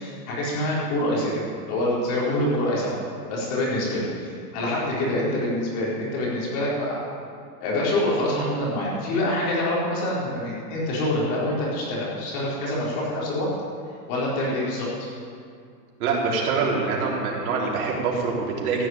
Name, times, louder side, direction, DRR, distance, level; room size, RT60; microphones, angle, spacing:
voice 1, 0.0-3.0 3.3-7.0 7.6-13.5 14.1-15.1, left 1 dB, 35° left, -6 dB, 4.4 m, -26 dB
voice 2, 16.0-18.9, right 4 dB, 55° right, -4 dB, 3.8 m, -25 dB
15.0 x 6.4 x 9.2 m, 2.3 s
supercardioid pair, 155°, 50 cm